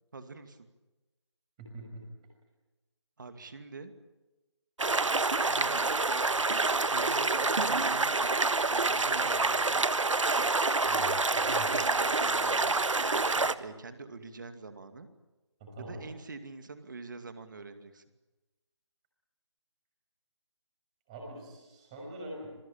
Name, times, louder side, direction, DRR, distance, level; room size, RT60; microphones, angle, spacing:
voice 1, 0.1-0.7 3.2-3.9 5.5-5.8 6.9-8.2 8.7-9.9 11.4-12.9 13.1-15.1 15.8-18.0, right 4 dB, 40° right, 8 dB, 2.4 m, -45 dB
voice 2, 1.6-2.1 10.8-11.7 15.6-16.1 21.1-22.6, equal, 15° right, 0 dB, 6.1 m, -44 dB
sound 1, 4.8-13.5, right 3 dB, 85° right, 1.4 m, -27 dB
27.0 x 21.5 x 8.8 m, 1.1 s
figure-of-eight pair, 170°, 16 cm